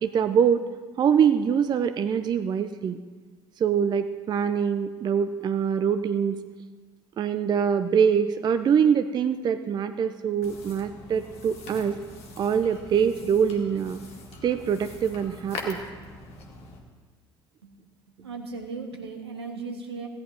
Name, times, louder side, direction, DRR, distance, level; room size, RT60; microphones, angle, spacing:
voice 1, 0.0-0.6 1.0-3.0 3.6-6.4 7.2-12.0 12.4-14.0 14.4-15.8, right 7 dB, 30° right, 11 dB, 0.5 m, -24 dB
sound 1, 10.4-16.8, left 3 dB, 50° left, 1.8 m, -42 dB
voice 2, 18.2-20.1, right 4 dB, 75° right, 3 dB, 1.3 m, -36 dB
16.5 x 10.5 x 2.7 m, 1.4 s
figure-of-eight pair, 55°, 14 cm